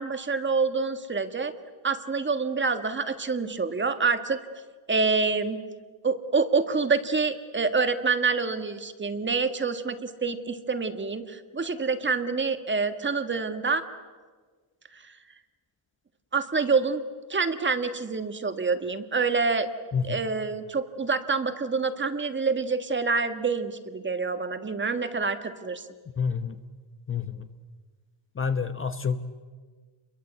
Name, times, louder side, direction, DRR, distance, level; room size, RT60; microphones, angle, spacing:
voice 1, 0.0-1.5 1.8-4.4 4.9-5.6 6.0-13.8 14.9-15.1 16.3-17.0 17.3-19.7 20.0-25.9, right 4 dB, 25° right, 9 dB, 1.7 m, -27 dB
voice 2, 19.9-20.2 26.2-26.6 27.1-27.5 28.3-29.2, left 6 dB, 25° left, 9 dB, 1.1 m, -28 dB
28.5 x 23.0 x 8.2 m, 1.5 s
cardioid pair, 130°, 49 cm